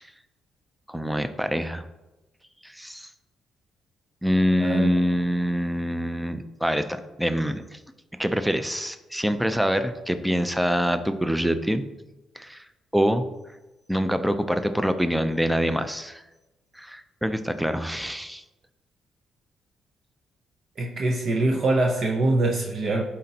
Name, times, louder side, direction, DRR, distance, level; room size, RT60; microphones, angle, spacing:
voice 1, 0.9-1.8 2.6-3.1 4.2-7.8 8.2-11.9 12.4-12.6 12.9-13.3 13.9-16.2 16.8-18.4, equal, 5° right, 10 dB, 0.5 m, -25 dB
voice 2, 4.6-4.9 20.8-23.0, right 2 dB, 50° right, 1 dB, 0.7 m, -23 dB
11.5 x 4.3 x 2.8 m, 1.0 s
cardioid pair, 90°, 0 cm